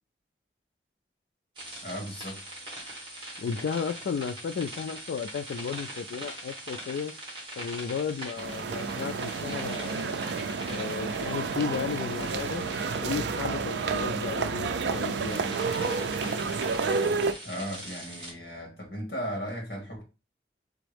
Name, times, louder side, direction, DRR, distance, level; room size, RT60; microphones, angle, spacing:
sound 1, 1.5-18.3, right 1 dB, 30° right, 1.8 m, -42 dB
voice 1, 1.8-2.4 17.4-20.0, equal, 60° left, 1.9 m, -36 dB
voice 2, 3.4-7.1 7.6-10.2 10.7-12.6 13.0-15.6, left 6 dB, 85° left, 0.3 m, -34 dB
sound 2, 8.4-17.3, right 4 dB, 85° right, 0.4 m, -30 dB
4.1 x 3.5 x 3.4 m
head